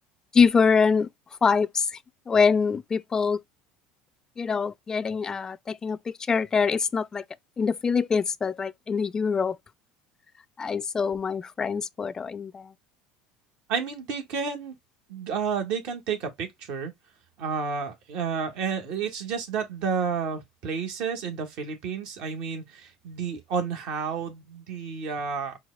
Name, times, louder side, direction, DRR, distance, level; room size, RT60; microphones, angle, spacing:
voice 1, 0.3-1.1 1.4-2.0 2.3-3.4 4.4-7.2 7.6-9.6 10.6-12.7, left 5 dB, 25° left, 0.4 m, -24 dB
voice 2, 13.7-14.7 15.1-16.9 17.4-25.6, right 6 dB, 65° right, 1.5 m, -31 dB
4.5 x 2.3 x 3.8 m
hypercardioid pair, 85°, 2 cm